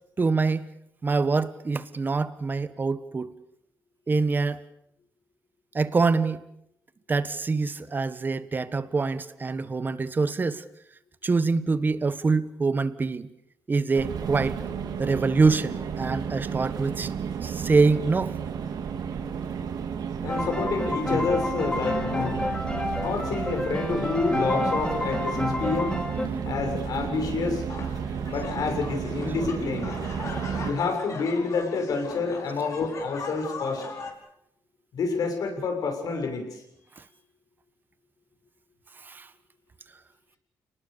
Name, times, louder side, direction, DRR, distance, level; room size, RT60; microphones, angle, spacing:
voice 1, 0.2-0.7 1.0-3.3 4.1-4.6 5.7-6.4 7.1-10.6 11.2-13.3 13.7-14.6 15.0-17.1 17.4-18.4 29.2-29.3 39.0-39.3, right 4 dB, 30° right, 13 dB, 1.4 m, -25 dB
sound 1, 14.0-30.7, right 7 dB, 75° right, 2.7 m, -32 dB
voice 2, 20.2-22.4 23.0-26.0 26.4-27.6 28.3-29.9 30.6-33.8 34.9-36.6, left 4 dB, 70° left, 4 dB, 6.9 m, -28 dB
sound 2, 20.3-26.3, left 2 dB, 15° left, 5.9 m, -29 dB
sound 3, 27.7-34.1, left 4 dB, 55° left, 5.1 m, -39 dB
29.5 x 20.0 x 6.9 m, 0.76 s
cardioid pair, 120°, 7 cm